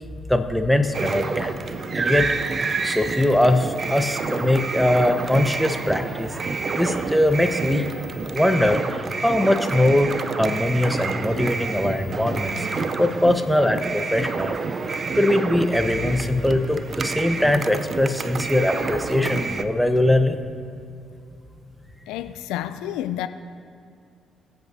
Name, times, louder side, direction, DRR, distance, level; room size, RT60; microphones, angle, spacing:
voice 1, 0.3-1.6 1.9-2.3 2.8-6.4 6.7-7.9 8.2-10.1 10.4-12.7 13.0-14.5 15.1-20.4, left 1 dB, 5° left, 6 dB, 1.1 m, -21 dB
sound 1, 0.9-19.6, right 4 dB, 45° right, 0.6 m, -28 dB
voice 2, 22.1-23.3, left 12 dB, 80° left, 11 dB, 0.4 m, -29 dB
23.0 x 8.0 x 2.8 m, 2.5 s
hypercardioid pair, 50°, 0 cm